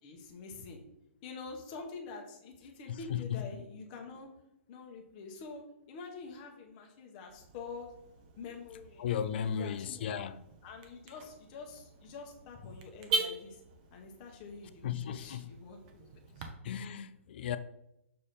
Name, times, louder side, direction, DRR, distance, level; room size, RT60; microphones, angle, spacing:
voice 1, 0.0-0.8 1.2-4.3 4.7-7.9 8.4-9.0 9.3-10.2 10.6-13.6 13.9-16.1 16.4-16.5, left 4 dB, 30° left, 1.1 m, -46 dB
voice 2, 3.1-3.4 9.0-10.4 14.8-15.5 16.6-17.6, left 8 dB, 50° left, 0.4 m, -35 dB
Car / Alarm, 7.3-16.5, right 3 dB, 35° right, 0.8 m, -42 dB
6.6 x 3.5 x 4.3 m
hypercardioid pair, 165°, 7 cm